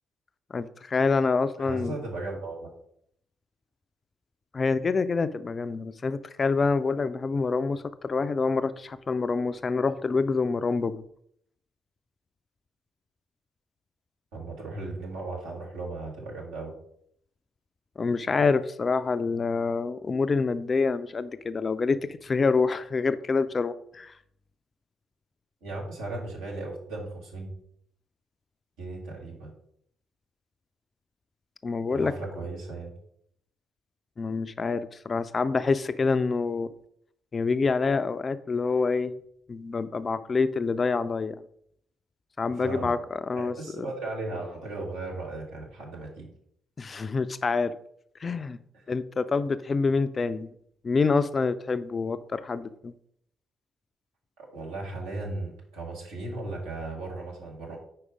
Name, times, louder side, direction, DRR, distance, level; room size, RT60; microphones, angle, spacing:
voice 1, 0.5-1.9 4.5-11.0 18.0-24.1 31.6-32.1 34.2-36.7 37.3-39.1 39.5-41.4 42.4-43.9 46.8-47.7 48.2-48.6 48.9-50.5 50.8-52.9, left 4 dB, 35° left, 14 dB, 0.3 m, -26 dB
voice 2, 1.6-2.7 14.3-16.7 25.6-27.5 28.8-29.5 31.9-32.9 42.5-42.9 43.4-46.3 54.4-57.8, right 2 dB, 65° right, -2 dB, 1.5 m, -36 dB
4.9 x 4.6 x 4.9 m, 0.70 s
figure-of-eight pair, 45°, 0 cm